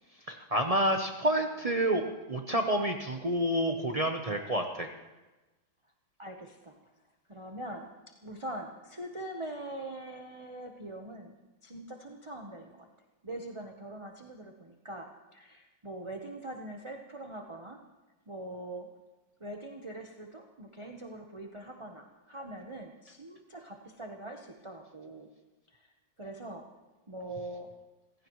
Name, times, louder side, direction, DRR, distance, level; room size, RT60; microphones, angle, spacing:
voice 1, 0.3-4.9, right 1 dB, 45° right, 3 dB, 0.4 m, -29 dB
voice 2, 6.2-6.7 7.3-7.9 8.2-11.3 11.6-12.9 13.2-17.8 18.3-18.9 19.4-25.3 25.7-25.9 26.2-26.7 27.1-27.7, right 1 dB, 25° right, 1 dB, 0.7 m, -43 dB
27.5 x 15.5 x 3.1 m, 1.1 s
omnidirectional pair, 2.2 m